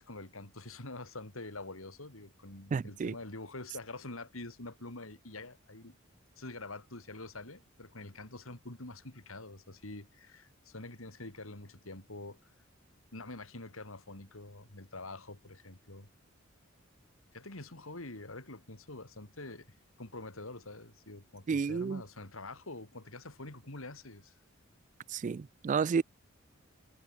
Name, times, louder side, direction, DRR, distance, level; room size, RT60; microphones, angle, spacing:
voice 1, 0.0-6.0 6.4-12.5 13.1-16.1 17.3-24.3, left 2 dB, 80° left, 3.8 m, -46 dB
voice 2, 2.7-3.1 21.5-22.0 25.1-26.0, right 5 dB, 40° right, 0.3 m, -31 dB
head